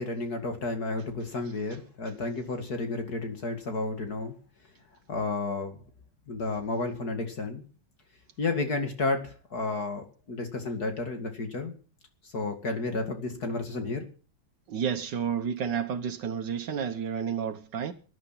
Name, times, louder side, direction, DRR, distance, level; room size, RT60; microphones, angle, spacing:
voice 1, 0.0-4.3 5.1-5.8 6.3-7.6 8.4-11.7 12.2-14.1, left 3 dB, 60° left, 2.9 m, -32 dB
voice 2, 14.7-17.9, right 7 dB, 80° right, 1.8 m, -31 dB
21.0 x 11.0 x 5.9 m
omnidirectional pair, 1.9 m